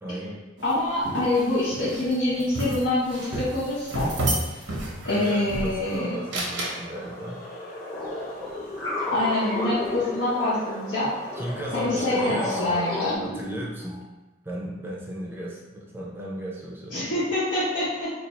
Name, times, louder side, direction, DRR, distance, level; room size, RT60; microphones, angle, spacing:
voice 1, 0.0-0.4 5.1-7.4 11.3-12.8 13.2-14.0 14.4-17.1, right 1 dB, 10° right, -4 dB, 0.5 m, -35 dB
voice 2, 0.6-4.1 5.0-6.1 9.1-11.1 11.7-13.2 16.9-18.1, left 1 dB, 85° left, -13 dB, 1.0 m, -25 dB
sound 1, 0.6-5.9 6.3-6.8, right 1 dB, 85° right, 0.8 m, -31 dB
sound 2, 5.9-13.2, left 1 dB, 50° left, 0.7 m, -37 dB
sound 3, 7.9-10.7 11.3-14.0, left 2 dB, 15° left, 0.8 m, -32 dB
2.6 x 2.4 x 4.2 m, 1.1 s
head